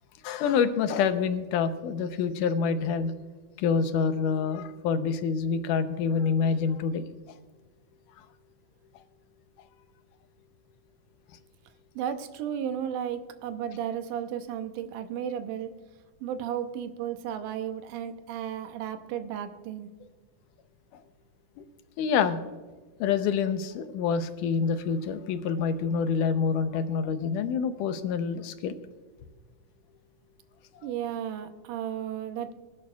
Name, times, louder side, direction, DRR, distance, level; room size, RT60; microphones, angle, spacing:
voice 1, 0.2-3.1 3.6-7.1 9.0-9.1 20.9-21.0 21.6-21.7 22.0-22.4 23.0-28.8 30.7-30.9, left 6 dB, 80° left, 10 dB, 2.3 m, -27 dB
voice 2, 12.0-15.7 16.2-19.9 30.8-32.5, right 9 dB, 90° right, 7 dB, 2.3 m, -34 dB
21.0 x 11.5 x 2.3 m, 1.3 s
omnidirectional pair, 3.7 m